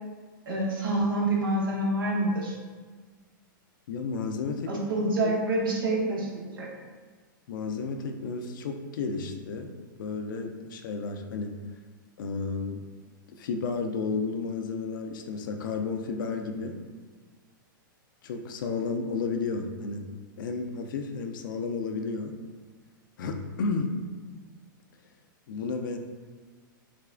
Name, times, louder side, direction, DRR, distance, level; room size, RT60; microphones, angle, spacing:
voice 1, 0.5-2.6 4.7-6.7, right 1 dB, 85° right, -3 dB, 1.2 m, -27 dB
voice 2, 3.9-4.9 5.2-5.3 7.5-11.5 12.2-12.9 13.3-16.8 18.2-20.1 20.4-22.3 23.2-24.0 25.5-26.0, left 4 dB, 70° left, 5 dB, 0.5 m, -32 dB
6.6 x 2.3 x 2.5 m, 1.5 s
hypercardioid pair, 125°, 11 cm